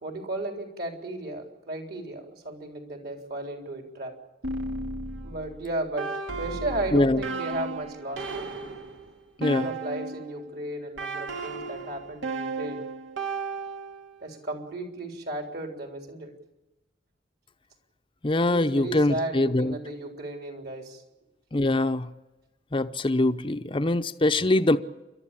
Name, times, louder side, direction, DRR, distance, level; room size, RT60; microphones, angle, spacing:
voice 1, 0.0-4.1 5.2-8.5 9.5-12.9 14.2-16.3 18.5-21.0, right 1 dB, 55° right, 3.9 m, -35 dB
sound 1, 4.4-10.4 11.0-14.2, right 3 dB, 85° right, 2.4 m, -34 dB
voice 2, 18.2-19.7 21.5-22.1 22.7-24.8, left 2 dB, 25° left, 0.7 m, -23 dB
29.5 x 12.5 x 8.6 m
head